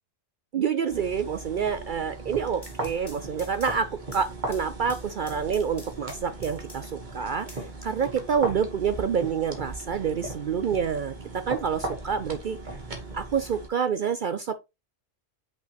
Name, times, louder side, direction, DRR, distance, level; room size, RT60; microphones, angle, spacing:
voice 1, 0.5-12.6 13.1-14.6, right 7 dB, 70° right, 0.4 m, -28 dB
sound 1, 0.9-13.7, right 2 dB, 35° right, 1.6 m, -38 dB
sound 2, 2.6-7.0 7.5-8.5, left 1 dB, 20° left, 1.6 m, -49 dB
6.1 x 5.7 x 3.0 m
omnidirectional pair, 1.4 m